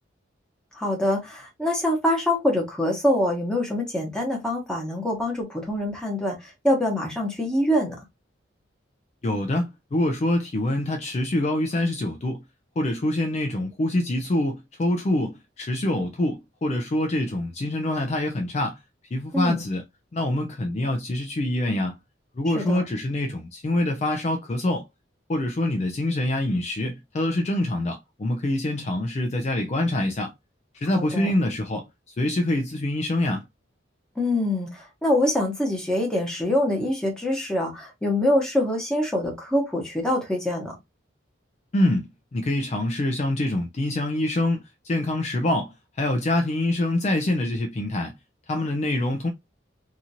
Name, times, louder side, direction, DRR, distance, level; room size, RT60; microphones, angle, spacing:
voice 1, 0.8-6.4 6.6-8.0 19.3-19.6 22.5-22.8 30.9-31.3 34.2-40.7, left 1 dB, 5° left, 1.0 m, -24 dB
voice 2, 9.2-12.4 12.8-18.8 19.1-19.8 20.1-22.0 22.4-24.8 25.3-30.3 30.7-33.4 41.7-48.1 48.5-49.3, left 1 dB, 35° left, 0.4 m, -25 dB
2.8 x 2.5 x 2.7 m
head